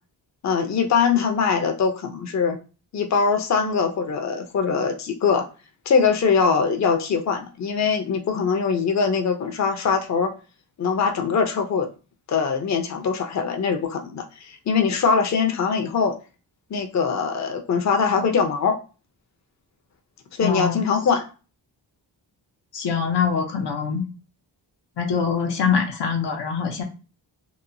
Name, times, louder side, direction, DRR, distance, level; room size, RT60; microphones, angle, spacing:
voice 1, 0.4-2.6 2.9-5.4 5.9-10.3 10.8-11.9 12.3-16.1 16.7-18.8 20.3-21.2, left 5 dB, 40° left, 4 dB, 0.6 m, -22 dB
voice 2, 20.4-20.8 22.7-24.0 25.0-26.8, left 6 dB, 75° left, 2 dB, 0.7 m, -24 dB
2.9 x 2.1 x 2.6 m, 0.33 s
cardioid pair, 70°, 42 cm